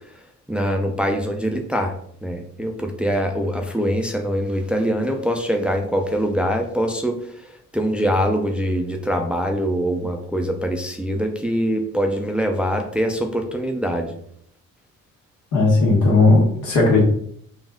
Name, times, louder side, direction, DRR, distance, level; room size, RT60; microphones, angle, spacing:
voice 1, 0.5-14.2, equal, 5° right, 4 dB, 0.5 m, -23 dB
voice 2, 15.5-17.0, left 3 dB, 80° left, -2 dB, 1.6 m, -16 dB
4.1 x 2.5 x 3.6 m, 0.66 s
cardioid pair, 90°, 30 cm